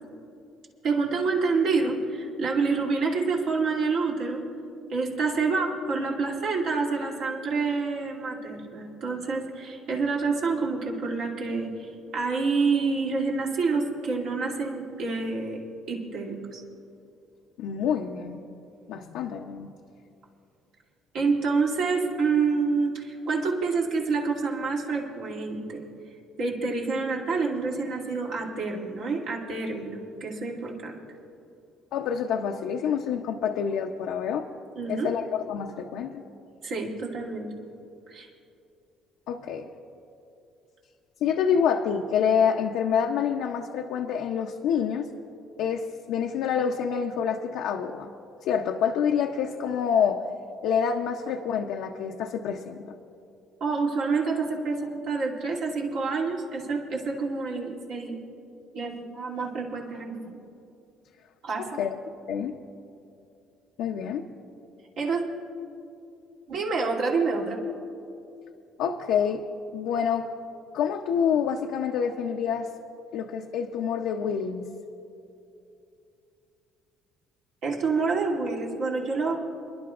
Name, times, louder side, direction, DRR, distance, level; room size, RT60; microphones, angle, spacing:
voice 1, 0.8-4.4 4.9-15.6 15.9-16.6 21.1-25.8 26.4-31.0 34.8-35.1 36.6-37.5 38.1-38.3 53.6-58.2 58.7-60.4 61.4-61.8 65.0-65.3 66.5-67.6 77.6-79.4, right 4 dB, 70° right, -3 dB, 2.6 m, -27 dB
voice 2, 17.6-18.4 18.9-19.7 31.9-34.4 34.9-36.2 39.3-39.7 41.2-45.1 45.6-48.1 48.4-50.2 50.6-52.9 61.6-62.0 62.3-62.5 63.8-64.2 68.8-69.4 69.7-70.3 70.7-72.7 73.1-74.7, left 7 dB, 80° left, 2 dB, 0.6 m, -27 dB
29.0 x 11.0 x 2.5 m, 2.7 s
cardioid pair, 100°, 0 cm